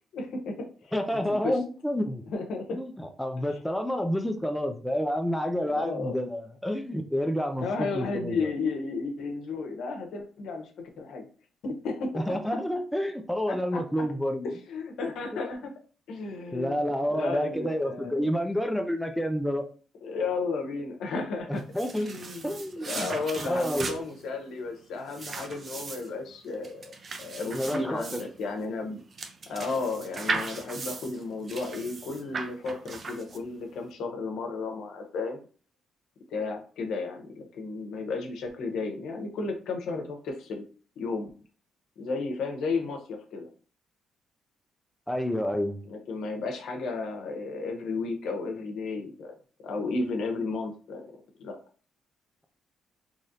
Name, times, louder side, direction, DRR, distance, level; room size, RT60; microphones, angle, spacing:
voice 1, 0.1-0.9 1.3-1.6 2.3-2.8 3.5-3.6 5.7-6.1 7.6-10.7 11.0-11.3 11.6-12.1 13.5-13.8 14.7-15.7 16.1-16.8 17.1-18.3 20.0-21.6 21.9-22.6 22.9-29.0 29.5-35.4 36.3-40.6 41.0-41.3 42.0-43.5 45.9-49.3 49.6-51.0 51.4-51.6, left 3 dB, 75° left, 3 dB, 0.8 m, -33 dB
voice 2, 0.9-2.2 2.7-8.4 12.1-14.5 15.3-15.5 16.5-19.7 21.5-22.1 22.4-23.1 23.4-24.0 27.5-28.2 45.1-45.8, equal, 5° left, 4 dB, 0.5 m, -29 dB
sound 1, 21.6-33.7, right 3 dB, 40° right, 0.5 m, -38 dB
4.0 x 3.0 x 2.6 m, 0.40 s
cardioid pair, 90°, 0 cm